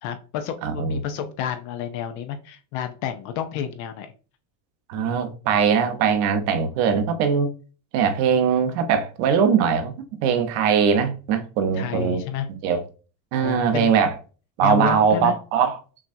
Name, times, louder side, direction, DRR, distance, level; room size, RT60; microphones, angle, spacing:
voice 1, 0.0-4.1 11.7-12.5 13.4-13.9 14.6-15.4, left 9 dB, 40° left, 0.5 m, -30 dB
voice 2, 0.6-1.0 4.9-7.5 7.9-9.9 10.2-12.2 12.6-12.8 13.3-14.1 14.6-15.8, right 7 dB, 65° right, 1.0 m, -21 dB
5.9 x 2.3 x 2.6 m
cardioid pair, 160°, 47 cm